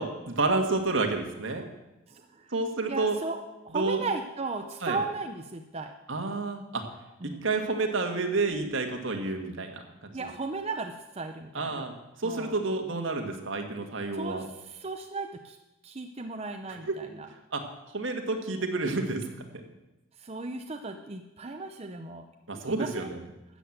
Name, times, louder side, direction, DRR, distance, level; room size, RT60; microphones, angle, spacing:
voice 1, 0.0-1.7 2.5-3.2 3.7-4.0 4.8-5.0 6.1-6.8 7.2-10.3 11.6-14.5 16.8-16.9 17.5-17.6 17.9-19.2 19.5-19.6 22.5-23.2, right 3 dB, 70° right, 4 dB, 1.7 m, -30 dB
voice 2, 2.1-2.5 2.9-5.9 7.2-7.5 10.1-11.9 12.2-12.6 14.1-15.6 15.8-17.3 20.2-22.2 22.5-23.1, right 3 dB, 30° right, 4 dB, 0.6 m, -36 dB
13.0 x 7.7 x 7.9 m, 1.0 s
head